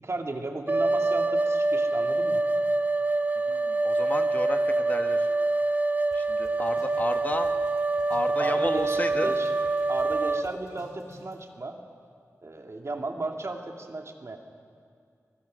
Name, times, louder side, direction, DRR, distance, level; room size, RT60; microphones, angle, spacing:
voice 1, 0.0-2.4 8.4-9.5 9.9-11.8 12.4-14.4, right 2 dB, 55° right, 3 dB, 2.3 m, -34 dB
sound 1, 0.7-10.4, right 2 dB, 30° right, 0.7 m, -25 dB
voice 2, 3.4-5.3 6.1-7.5 8.1-9.3, left 1 dB, 30° left, 6 dB, 1.4 m, -32 dB
sound 2, 6.1-6.2 6.4-8.8 9.1-11.3, left 2 dB, 90° left, 4.6 m, -51 dB
25.5 x 20.5 x 6.3 m, 2.2 s
wide cardioid pair, 75°, 6 cm